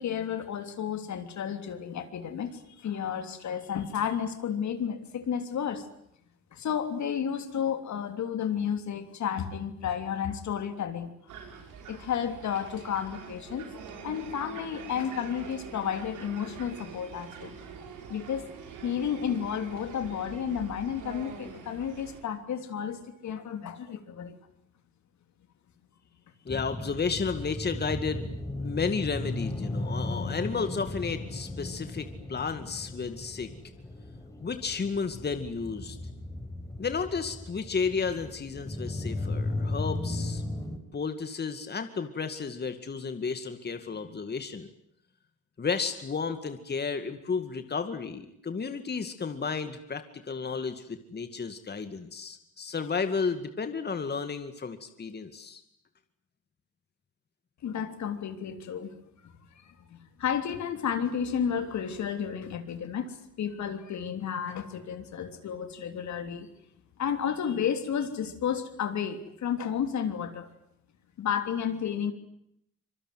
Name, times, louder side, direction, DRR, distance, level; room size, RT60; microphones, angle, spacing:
voice 1, 0.0-5.9 6.5-11.1 11.9-13.7 14.0-17.5 18.1-18.4 18.8-24.4 57.6-58.9 59.2-66.5 67.0-70.5 71.2-72.1, left 8 dB, 65° left, 8 dB, 3.2 m, -32 dB
sound 1, 11.3-22.2, right 6 dB, 90° right, 5.8 m, -45 dB
voice 2, 26.5-28.3 28.6-33.5 34.4-36.0 36.8-40.4 40.9-44.7 45.6-55.6, left 5 dB, 35° left, 9 dB, 2.3 m, -32 dB
sound 2, 26.5-40.8, left 2 dB, 10° left, 4.9 m, -36 dB
26.0 x 23.0 x 9.4 m, 0.76 s
cardioid pair, 90°, 30 cm